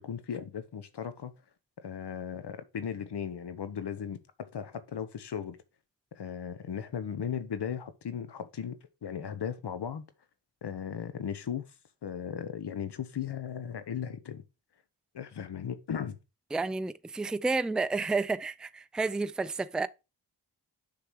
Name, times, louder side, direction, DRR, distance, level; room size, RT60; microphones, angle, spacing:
voice 1, 0.0-1.3 1.8-4.2 4.5-5.6 6.2-8.7 9.0-10.0 10.6-11.7 12.0-14.4 15.1-16.2, left 8 dB, 65° left, 1.1 m, -36 dB
voice 2, 16.5-19.9, right 3 dB, ahead, 0.4 m, -30 dB
6.7 x 6.0 x 4.7 m
cardioid pair, 45°, 44 cm